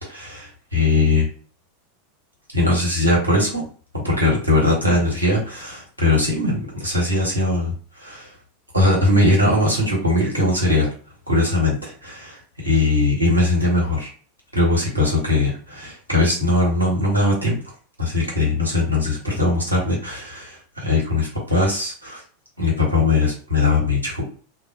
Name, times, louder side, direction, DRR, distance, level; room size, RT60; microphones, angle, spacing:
voice 1, 0.0-1.3 2.5-3.6 3.9-8.3 8.7-10.9 11.3-14.1 14.5-17.6 18.0-22.2 22.6-24.2, left 2 dB, 90° right, -5 dB, 1.3 m, -20 dB
2.4 x 2.2 x 2.6 m, 0.41 s
figure-of-eight pair, 85°, 0 cm